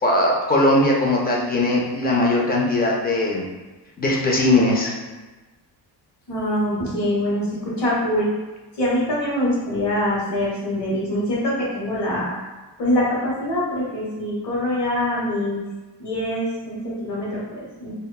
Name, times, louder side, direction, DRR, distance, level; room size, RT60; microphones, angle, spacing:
voice 1, 0.0-3.4 4.0-4.9, left 1 dB, 25° left, -2 dB, 0.3 m, -19 dB
voice 2, 6.3-8.3 8.8-12.4 12.8-15.6 16.0-17.9, left 1 dB, 70° left, -6 dB, 1.1 m, -24 dB
2.9 x 2.2 x 2.2 m, 1.2 s
wide cardioid pair, 155°, 42 cm